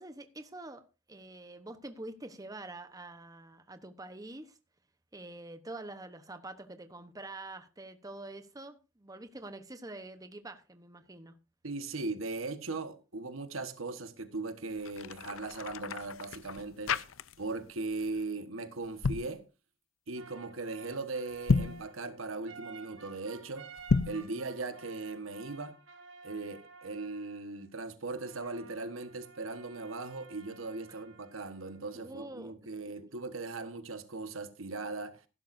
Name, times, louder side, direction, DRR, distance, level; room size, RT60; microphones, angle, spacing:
voice 1, 0.0-4.6 5.1-11.3 31.9-32.5, right 2 dB, 20° right, 1.0 m, -46 dB
voice 2, 11.6-17.0 17.4-19.4 20.1-23.7 24.1-25.8 26.2-35.2, right 3 dB, 90° right, 1.4 m, -39 dB
sound 1, 14.7-17.7 17.9-18.2 18.8-19.3 21.3-21.9 23.8-24.3, left 4 dB, 85° left, 0.6 m, -31 dB
sound 2, 20.1-27.7 28.1-32.1, right 4 dB, 65° right, 2.0 m, -53 dB
15.0 x 12.0 x 2.6 m
head